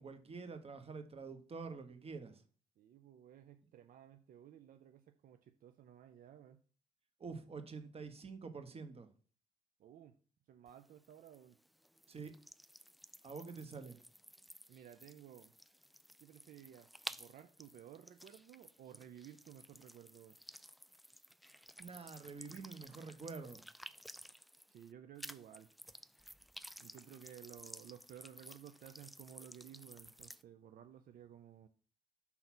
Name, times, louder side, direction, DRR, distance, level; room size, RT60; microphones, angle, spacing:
voice 1, 0.0-2.4 7.2-9.1 12.1-12.3 13.2-14.0 21.8-23.6, right 4 dB, 40° right, 1.2 m, -47 dB
voice 2, 2.8-6.6 9.8-10.1 10.5-11.6 14.7-15.5 16.2-20.4 24.7-25.7 26.8-31.7, right 10 dB, 70° right, 0.5 m, -56 dB
sound 1, 10.7-24.9 25.2-30.4, equal, ahead, 0.3 m, -54 dB
5.7 x 4.0 x 6.0 m
cardioid pair, 70°, 15 cm